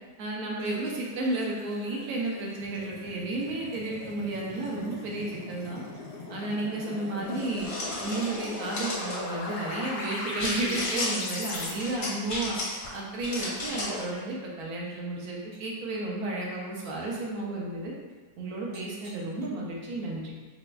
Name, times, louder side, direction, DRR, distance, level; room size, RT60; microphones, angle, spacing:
voice 1, 0.2-5.8 6.3-7.7 8.0-12.6 12.9-17.9 18.4-20.3, right 2 dB, 70° right, -2 dB, 1.1 m, -32 dB
sound 1, 0.6-12.7 13.2-13.8 14.0-14.3 14.8-14.9 15.5-15.8 16.3-16.6 17.0-17.3 18.1-18.2 18.7-19.4, equal, 35° right, 0.6 m, -50 dB
sound 2, 2.6-11.7, left 3 dB, 80° left, 1.1 m, -39 dB
sound 3, 7.3-9.2 10.4-11.1 11.5-12.9 13.2-14.0, left 1 dB, 50° left, 0.6 m, -34 dB
4.1 x 2.3 x 2.2 m, 1.4 s
omnidirectional pair, 1.8 m